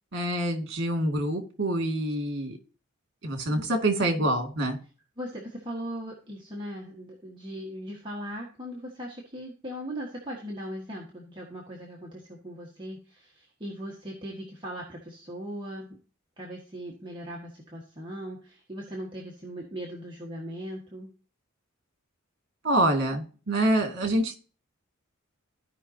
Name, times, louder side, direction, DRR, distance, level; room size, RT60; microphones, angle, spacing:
voice 1, 0.1-2.6 3.2-4.8 22.6-24.3, right 1 dB, 55° right, 4 dB, 2.2 m, -26 dB
voice 2, 5.2-16.0 16.4-21.1, equal, 25° right, -3 dB, 1.6 m, -39 dB
15.0 x 5.4 x 2.8 m, 0.37 s
head